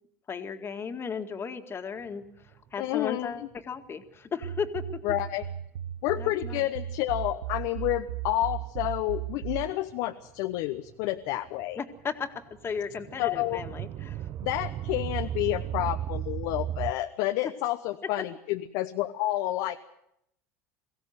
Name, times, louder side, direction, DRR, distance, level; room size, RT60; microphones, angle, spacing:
voice 1, 0.3-5.0 6.2-6.7 11.8-12.3 12.6-14.3 17.4-17.5, left 6 dB, 30° left, 6 dB, 2.0 m, -35 dB
sound 1, 2.4-2.7 5.9-6.0 6.3-6.4 6.7-6.9 7.6-8.2 8.5-9.0 9.3-12.0 12.3-16.9, right 11 dB, 50° right, 0.7 m, -35 dB
voice 2, 2.8-3.4 5.0-5.4 6.0-11.8 13.2-13.6 14.4-19.8, left 15 dB, 70° left, 7 dB, 0.9 m, -29 dB
sound 2, 4.4-9.7, right 13 dB, 90° right, 0.8 m, -36 dB
22.5 x 16.0 x 7.9 m, 0.78 s
hypercardioid pair, 85°, 8 cm